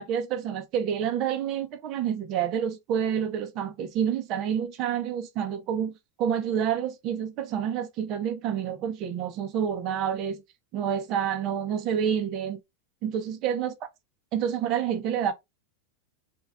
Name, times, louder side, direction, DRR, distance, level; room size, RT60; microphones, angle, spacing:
voice 1, 0.0-5.9 6.2-10.4 10.7-12.6 13.0-13.7 14.3-15.3, right 8 dB, 30° right, 0.5 m, -28 dB
2.5 x 2.1 x 3.4 m
supercardioid pair, 175°, 0 cm